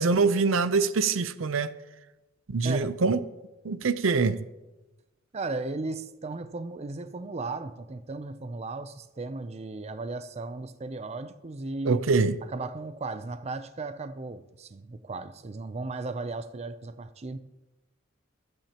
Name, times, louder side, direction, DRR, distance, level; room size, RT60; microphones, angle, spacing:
voice 1, 0.0-1.7 2.5-3.2 3.6-4.5 11.9-12.4, right 4 dB, 90° right, 0.6 m, -24 dB
voice 2, 2.6-2.9 5.3-12.0 12.5-17.4, right 3 dB, 35° right, 0.5 m, -36 dB
25.0 x 8.9 x 2.9 m
head